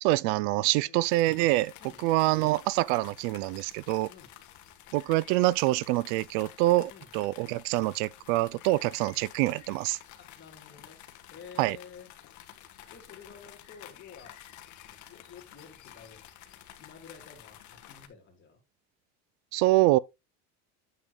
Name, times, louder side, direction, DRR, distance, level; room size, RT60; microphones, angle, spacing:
voice 1, 0.0-1.7 2.0-4.1 4.9-10.0 11.6-11.8 19.5-20.0, right 18 dB, 80° right, 0.5 m, -25 dB
sound 1, 1.0-18.1, left 12 dB, 50° left, 1.3 m, -51 dB
voice 2, 1.8-2.4 4.1-4.3 6.9-7.1 9.0-9.2 10.2-11.0 11.3-12.1 12.8-14.4 14.9-16.3 16.8-18.6, left 6 dB, 30° left, 3.4 m, -51 dB
9.2 x 8.0 x 2.3 m
cardioid pair, 135°, 36 cm